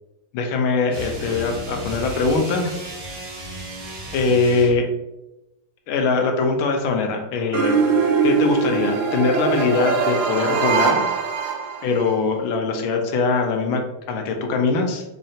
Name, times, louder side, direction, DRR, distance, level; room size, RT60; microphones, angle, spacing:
voice 1, 0.3-2.7 4.1-4.9 5.9-7.7 8.2-11.1 11.8-13.8 14.1-15.0, left 4 dB, 75° left, 4 dB, 1.4 m, -21 dB
sound 1, 0.9-4.9, right 1 dB, 45° right, 0.8 m, -34 dB
sound 2, 7.5-12.2, right 5 dB, 85° right, 0.8 m, -22 dB
3.8 x 3.2 x 2.7 m, 0.94 s
omnidirectional pair, 2.3 m